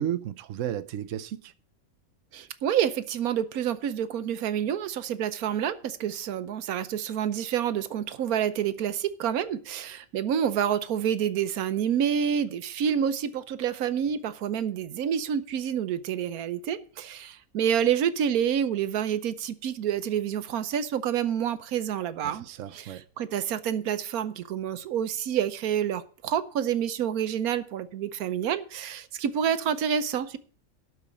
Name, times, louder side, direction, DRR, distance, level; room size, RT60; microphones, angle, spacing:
voice 1, 0.0-1.5 22.2-23.0, right 10 dB, 65° right, 1.0 m, -33 dB
voice 2, 2.3-22.4 22.7-30.4, right 9 dB, 85° right, 1.2 m, -28 dB
12.5 x 4.9 x 8.4 m
omnidirectional pair, 1.5 m